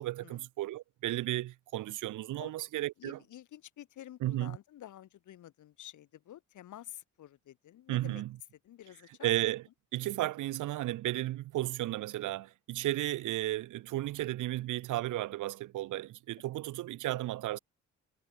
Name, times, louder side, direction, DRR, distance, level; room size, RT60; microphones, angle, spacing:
voice 1, 0.0-3.2 4.2-4.6 7.9-8.4 9.2-9.6 9.9-17.6, right 15 dB, 85° right, 1.8 m, -34 dB
voice 2, 3.0-8.2 8.6-9.3, left 12 dB, 75° left, 7.7 m, -50 dB
cardioid pair, 90°, 30 cm